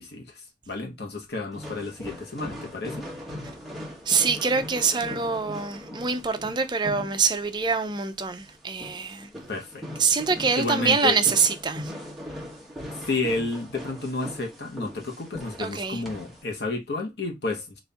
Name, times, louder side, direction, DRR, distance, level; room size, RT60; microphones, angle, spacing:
voice 1, 0.0-3.1 9.5-9.8 10.6-11.2 13.1-17.8, left 3 dB, 60° left, 1.0 m, -31 dB
sound 1, 1.5-16.4, left 1 dB, ahead, 0.9 m, -40 dB
voice 2, 4.1-9.3 10.0-11.9 15.6-16.0, right 5 dB, 25° right, 0.5 m, -25 dB
4.1 x 2.6 x 3.4 m
head